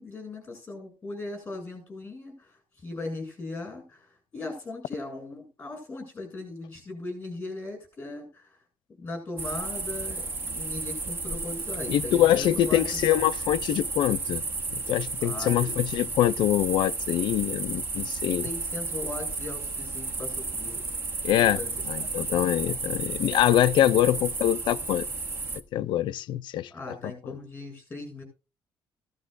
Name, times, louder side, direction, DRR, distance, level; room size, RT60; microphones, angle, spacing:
voice 1, 0.0-8.6 9.0-13.2 15.2-15.7 18.4-20.8 21.6-21.7 22.0-22.1 23.9-24.0 26.7-28.2, left 2 dB, 20° left, 7.6 m, -38 dB
sound 1, 9.4-25.6, right 3 dB, 30° right, 0.9 m, -33 dB
voice 2, 11.9-14.4 14.7-18.5 21.2-21.6 21.9-25.1 25.7-26.7 27.0-27.1, left 12 dB, 75° left, 0.5 m, -24 dB
16.0 x 13.5 x 2.5 m
cardioid pair, 170°, 8 cm